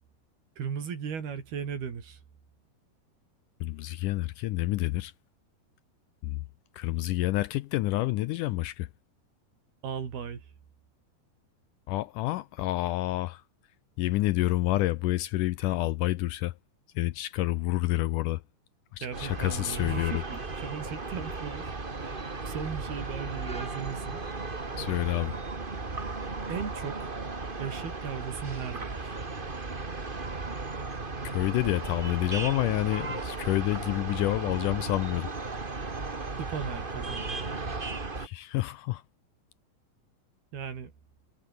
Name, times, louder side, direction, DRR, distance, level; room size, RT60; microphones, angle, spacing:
voice 1, 0.6-2.2 9.8-10.5 19.0-22.2 22.5-24.2 26.5-27.1 27.6-29.2 36.4-37.5 40.5-40.9, right 7 dB, 90° right, 5.8 m, -37 dB
voice 2, 3.6-5.1 6.2-6.4 6.7-8.9 11.9-13.4 14.0-16.5 17.0-18.4 18.9-20.2 24.8-25.4 31.2-35.5 38.2-39.0, left 18 dB, 80° left, 1.8 m, -28 dB
sound 1, 19.1-38.3, right 3 dB, 25° right, 1.1 m, -36 dB
omnidirectional pair, 4.3 m